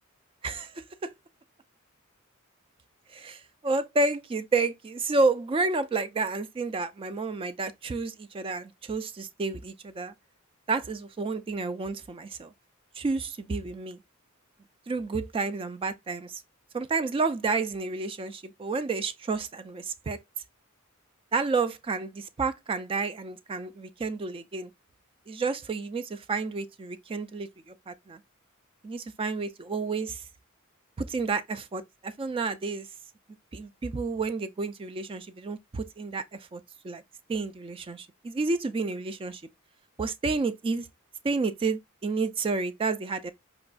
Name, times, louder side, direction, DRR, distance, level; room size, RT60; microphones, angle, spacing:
voice 1, 0.4-1.1 3.1-10.1 10.7-12.5 13.0-14.0 14.9-16.4 16.7-20.2 21.3-24.7 25.3-28.2 28.8-30.2 31.0-32.9 33.5-36.2 36.5-37.0 37.3-39.4 40.0-40.9 41.2-43.3, right 3 dB, 25° right, 0.3 m, -30 dB
5.0 x 2.3 x 2.3 m
head